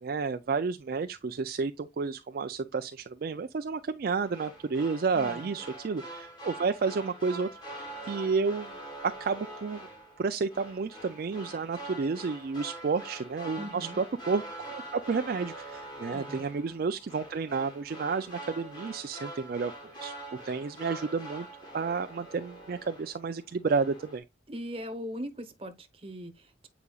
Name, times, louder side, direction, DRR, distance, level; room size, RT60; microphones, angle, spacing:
voice 1, 0.0-7.5 7.7-8.7 9.0-9.9 10.2-14.4 14.7-19.7 20.0-20.1 20.4-21.5 21.7-24.2, right 4 dB, 50° right, 0.4 m, -31 dB
sound 1, 4.2-23.3 23.6-24.2, right 1 dB, 20° left, 1.9 m, -44 dB
voice 2, 5.1-5.6 13.6-14.0 16.1-16.4 24.5-26.7, equal, 30° right, 1.0 m, -40 dB
8.2 x 4.9 x 2.3 m
head